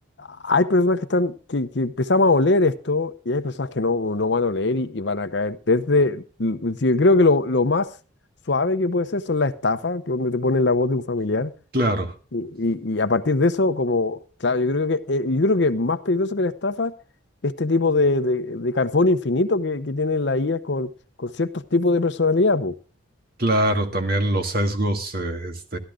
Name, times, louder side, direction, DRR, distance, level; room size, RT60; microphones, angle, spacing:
voice 1, 0.2-7.9 8.5-11.5 12.3-16.9 17.4-20.9 21.2-22.7, left 2 dB, 60° left, 0.8 m, -22 dB
voice 2, 11.7-12.1 23.4-25.8, right 1 dB, 50° right, 1.7 m, -23 dB
13.0 x 12.5 x 3.7 m
head